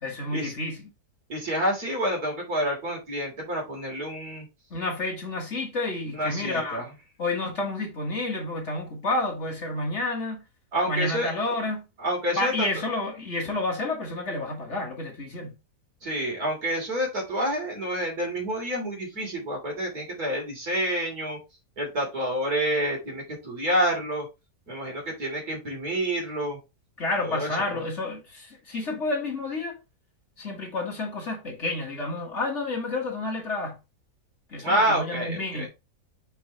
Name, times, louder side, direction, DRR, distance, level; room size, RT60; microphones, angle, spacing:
voice 1, 0.0-0.9 4.7-6.9 7.2-10.4 10.9-11.9 12.4-15.6 27.0-29.8 30.4-33.8 34.5-35.7, left 2 dB, 45° left, 1.9 m, -30 dB
voice 2, 1.3-4.5 6.1-6.9 10.7-11.3 12.0-12.7 16.0-21.4 21.8-24.3 24.7-26.6 27.2-27.8 34.6-35.7, right 1 dB, 65° right, 3.4 m, -28 dB
6.1 x 5.8 x 3.0 m
omnidirectional pair, 1.7 m